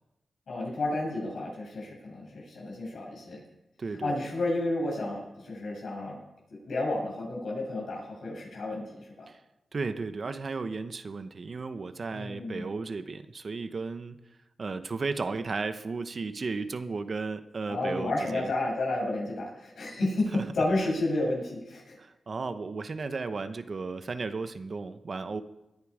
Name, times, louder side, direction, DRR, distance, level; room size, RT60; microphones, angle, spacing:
voice 1, 0.5-3.4 4.0-6.1 6.6-9.1 12.1-12.7 17.7-22.0, left 2 dB, 80° left, -3 dB, 7.5 m, -31 dB
voice 2, 3.8-4.3 9.3-9.4 9.7-14.2 14.6-18.5 20.3-20.5 22.0-25.4, right 4 dB, 50° right, 11 dB, 0.9 m, -34 dB
19.5 x 11.0 x 5.0 m, 0.93 s
cardioid pair, 75°, 0 cm